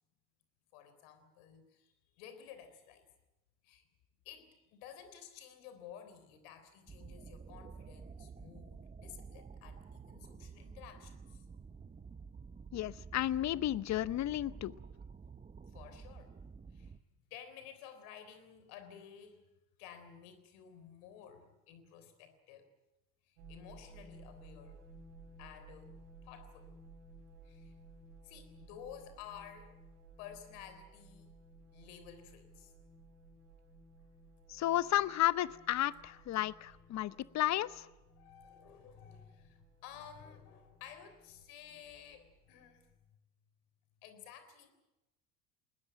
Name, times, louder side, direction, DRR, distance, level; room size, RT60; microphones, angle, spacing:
voice 1, 0.7-3.1 3.6-3.9 4.2-11.5 15.7-16.3 16.7-17.0 17.3-19.5 19.8-22.7 23.2-24.8 25.4-26.0 26.2-26.7 27.4-27.8 28.2-29.8 30.2-31.3 31.7-32.7 36.3-36.4 38.1-42.9 44.0-44.7, left 8 dB, 65° left, 10 dB, 3.7 m, -53 dB
sound 1, 6.9-17.0, right 5 dB, 15° right, 0.8 m, -51 dB
voice 2, 12.7-14.7 34.5-37.9, left 13 dB, 35° left, 18 dB, 0.8 m, -33 dB
sound 2, 23.4-42.9, right 2 dB, 70° right, 5.4 m, -58 dB
20.5 x 19.5 x 8.9 m, 1.0 s
hypercardioid pair, 70°, 45 cm